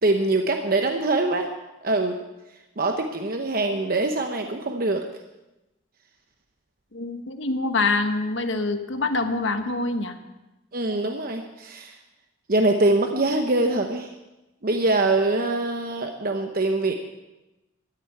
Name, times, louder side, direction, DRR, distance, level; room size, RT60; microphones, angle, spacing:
voice 1, 0.0-1.5 1.8-2.2 2.8-5.0 10.7-12.0 12.5-14.1 14.6-16.9, right 2 dB, 50° right, 4 dB, 0.9 m, -23 dB
voice 2, 6.9-10.2, left 3 dB, 75° left, 7 dB, 1.3 m, -25 dB
13.5 x 7.9 x 9.4 m, 1.0 s
head